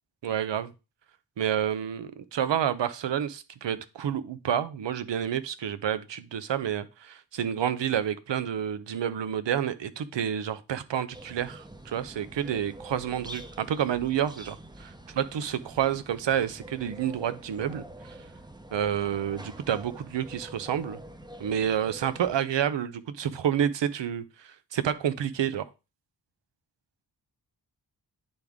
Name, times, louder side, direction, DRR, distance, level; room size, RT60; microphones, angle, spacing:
voice 1, 0.2-0.7 1.4-14.6 15.1-18.2 18.7-21.0 21.4-25.7, right 9 dB, 85° right, 14 dB, 0.6 m, -29 dB
sound 1, 11.1-22.4, right 1 dB, 10° right, 0.6 m, -45 dB
9.6 x 3.5 x 3.5 m, 0.28 s
wide cardioid pair, 65°, 42 cm